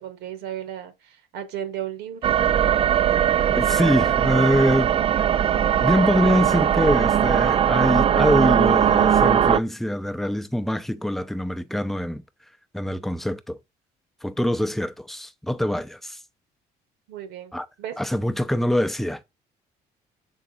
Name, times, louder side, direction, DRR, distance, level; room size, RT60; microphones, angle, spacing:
voice 1, 0.0-2.2 2.6-3.0 17.1-18.0, right 10 dB, 85° right, 1.7 m, -35 dB
sound 1, 2.2-9.6, right 9 dB, 35° right, 0.4 m, -20 dB
voice 2, 3.5-5.0 5.8-12.2 12.7-13.6 14.2-16.2 17.5-17.7 18.0-19.2, left 1 dB, ahead, 0.7 m, -24 dB
7.2 x 3.9 x 3.9 m
cardioid pair, 110°, 17 cm